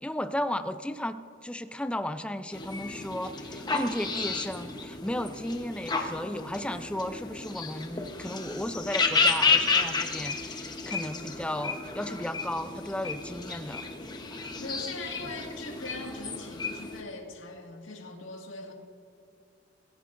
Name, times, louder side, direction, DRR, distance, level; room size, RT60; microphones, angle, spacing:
voice 1, 0.0-13.9 14.3-14.6, left 1 dB, 5° left, 10 dB, 0.4 m, -34 dB
sound 1, 2.5-17.0, left 4 dB, 20° left, 1.0 m, -31 dB
voice 2, 14.6-18.7, left 2 dB, 80° left, 1 dB, 2.0 m, -41 dB
22.5 x 15.5 x 2.6 m, 2.5 s
head